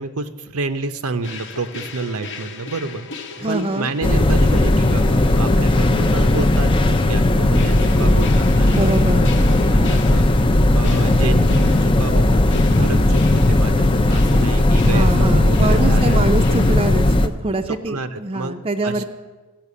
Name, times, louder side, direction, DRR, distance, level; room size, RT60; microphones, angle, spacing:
voice 1, 0.0-16.2 17.7-18.6 18.8-19.0, right 3 dB, 75° right, 10 dB, 0.7 m, -29 dB
sound 1, 1.2-16.7, left 4 dB, 55° left, 0.9 m, -37 dB
voice 2, 3.4-3.9 8.7-9.3 14.8-19.0, right 2 dB, 25° right, 6 dB, 0.5 m, -24 dB
sound 2, 4.0-17.3, left 1 dB, 25° left, 0.5 m, -16 dB
14.0 x 5.9 x 8.3 m, 1.3 s
head